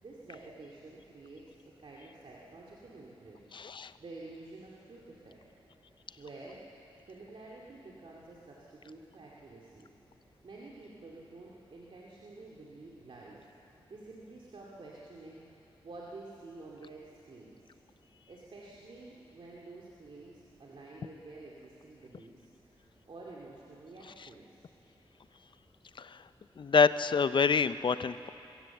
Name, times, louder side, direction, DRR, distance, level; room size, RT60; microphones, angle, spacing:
voice 1, 0.0-1.4 1.8-3.4 3.7-5.4 6.2-6.6 7.0-9.9 10.4-15.4 15.8-17.7 18.3-24.6, right 2 dB, 60° right, -4 dB, 2.4 m, -50 dB
voice 2, 3.5-3.9 26.0-26.1 26.6-28.3, left 5 dB, 55° left, 14 dB, 0.6 m, -26 dB
23.0 x 16.0 x 7.3 m, 2.8 s
wide cardioid pair, 95°, 10 cm